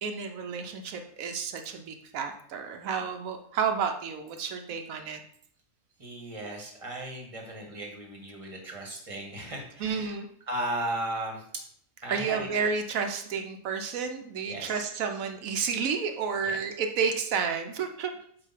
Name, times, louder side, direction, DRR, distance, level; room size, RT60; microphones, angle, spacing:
voice 1, 0.0-5.2 9.8-10.3 12.1-18.1, right 6 dB, 85° right, 5 dB, 1.1 m, -31 dB
voice 2, 6.0-10.2 10.5-11.4 12.0-12.5 14.4-14.8 16.4-16.6, right 1 dB, 25° right, 0 dB, 1.4 m, -36 dB
7.8 x 2.8 x 5.7 m, 0.63 s
omnidirectional pair, 1.4 m